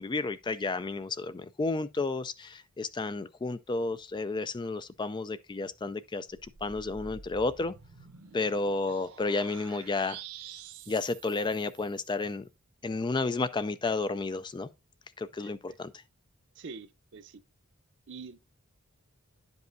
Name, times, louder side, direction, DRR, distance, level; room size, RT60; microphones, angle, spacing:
voice 1, 0.0-7.7 8.3-10.2 10.9-12.4 12.8-14.7 15.2-15.9, left 3 dB, 20° left, 0.3 m, -32 dB
sound 1, 6.3-12.1, right 7 dB, 90° right, 1.3 m, -49 dB
voice 2, 8.4-9.0 15.4-15.8 16.5-17.4 18.1-18.4, right 4 dB, 55° right, 0.7 m, -47 dB
10.5 x 5.3 x 2.6 m
head